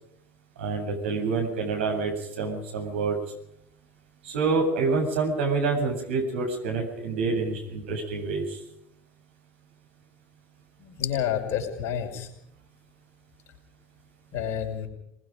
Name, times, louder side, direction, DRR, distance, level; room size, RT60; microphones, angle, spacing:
voice 1, 0.6-3.2 4.2-8.6, right 4 dB, 65° right, 1 dB, 7.8 m, -27 dB
voice 2, 10.8-12.3 14.3-14.9, left 9 dB, 45° left, 2 dB, 5.8 m, -29 dB
26.0 x 20.0 x 5.3 m, 0.78 s
figure-of-eight pair, 70°, 7 cm